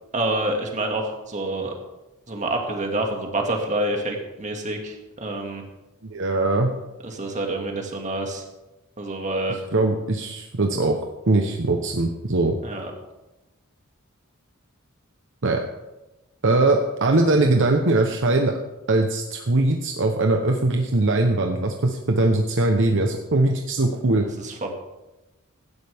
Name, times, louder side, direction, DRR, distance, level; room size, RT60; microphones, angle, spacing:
voice 1, 0.1-1.7 2.3-5.6 7.0-8.4 9.0-9.6 12.6-12.9 24.4-24.7, right 1 dB, 35° right, 2 dB, 2.1 m, -27 dB
voice 2, 6.0-6.7 9.7-11.0 11.3-12.5 15.4-15.6 16.4-18.5 18.9-24.3, right 2 dB, 60° right, 3 dB, 1.0 m, -21 dB
16.5 x 12.0 x 3.5 m, 1.0 s
head